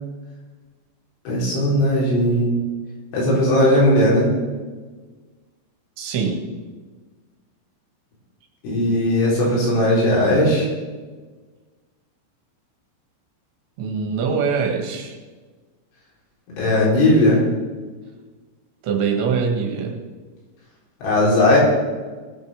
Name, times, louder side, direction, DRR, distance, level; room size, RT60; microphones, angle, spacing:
voice 1, 1.2-2.6 3.1-4.3 8.6-10.7 16.6-17.5 21.0-21.6, left 1 dB, 80° left, -5 dB, 6.9 m, -17 dB
voice 2, 6.0-6.4 13.8-15.2 18.8-19.9, right 5 dB, 75° right, 1 dB, 3.9 m, -23 dB
20.0 x 6.8 x 6.4 m, 1.4 s
omnidirectional pair, 5.3 m